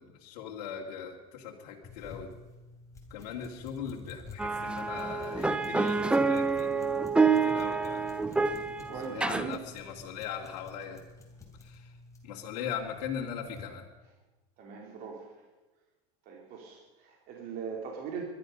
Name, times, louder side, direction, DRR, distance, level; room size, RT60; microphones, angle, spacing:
voice 1, 0.0-2.3 3.1-6.9 7.4-8.1 9.0-11.0 11.6-11.9 12.2-13.9, left 8 dB, 75° left, -1 dB, 2.2 m, -39 dB
sound 1, 1.8-13.7, left 3 dB, 15° left, 3.0 m, -51 dB
sound 2, 4.4-9.6, right 4 dB, 5° right, 0.5 m, -27 dB
voice 2, 8.9-9.6 14.6-15.3 16.3-18.3, right 6 dB, 45° right, 0 dB, 2.6 m, -40 dB
21.5 x 11.5 x 5.3 m, 1.2 s
supercardioid pair, 145°, 20 cm